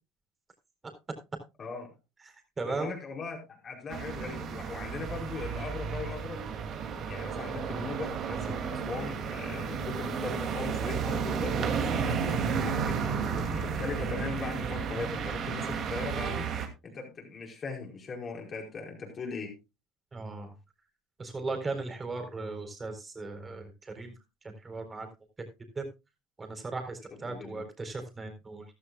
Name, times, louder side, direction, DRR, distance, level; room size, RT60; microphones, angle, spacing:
voice 1, 1.6-1.9 2.7-6.4 7.1-12.2 12.6-16.4 16.8-19.6 27.2-27.6, left 4 dB, 35° left, 1 dB, 4.8 m, -39 dB
voice 2, 2.6-2.9 20.1-20.5 21.2-24.1 24.4-25.1 25.8-25.9 26.4-28.6, right 3 dB, 25° right, 6 dB, 3.9 m, -37 dB
sound 1, 3.9-16.7, right 6 dB, 50° right, 2.4 m, -32 dB
14.5 x 12.5 x 2.3 m, 0.25 s
supercardioid pair, 90°, 0 cm